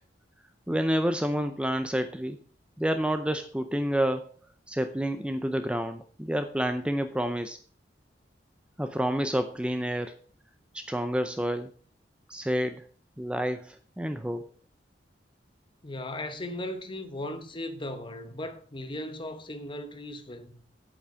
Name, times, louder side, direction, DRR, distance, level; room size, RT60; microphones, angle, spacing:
voice 1, 0.7-2.4 2.8-4.3 4.7-7.6 8.8-10.2 10.7-11.7 12.3-12.9 13.2-14.5, equal, 5° right, 0.5 m, -29 dB
voice 2, 15.8-20.6, left 1 dB, 30° left, 1.1 m, -37 dB
8.5 x 8.3 x 4.9 m
head